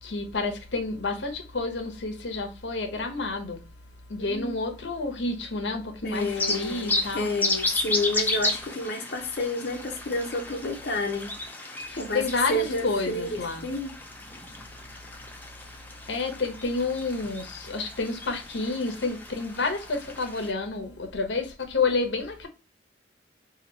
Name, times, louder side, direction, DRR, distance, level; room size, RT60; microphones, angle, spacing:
voice 1, 0.0-3.6 4.1-7.3 11.8-13.7 16.1-22.5, left 3 dB, 90° left, 0.9 m, -29 dB
voice 2, 4.2-4.5 6.0-11.3 11.6-14.0, left 2 dB, 60° left, 0.7 m, -30 dB
sound 1, 6.1-20.5, left 2 dB, 10° left, 0.6 m, -33 dB
2.9 x 2.8 x 4.0 m
head